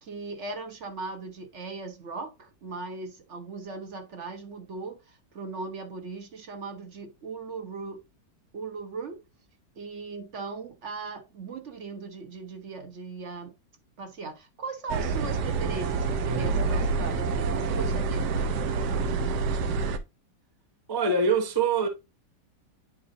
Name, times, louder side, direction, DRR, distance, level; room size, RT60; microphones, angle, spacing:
voice 1, 0.0-8.0 8.5-9.2 9.8-13.6 14.0-18.8, right 4 dB, 50° right, 1.0 m, -38 dB
sound 1, 14.9-20.0, right 4 dB, 75° right, 1.2 m, -27 dB
voice 2, 16.3-16.7 20.9-21.9, right 4 dB, 25° right, 0.5 m, -25 dB
9.6 x 4.1 x 2.6 m
omnidirectional pair, 1.8 m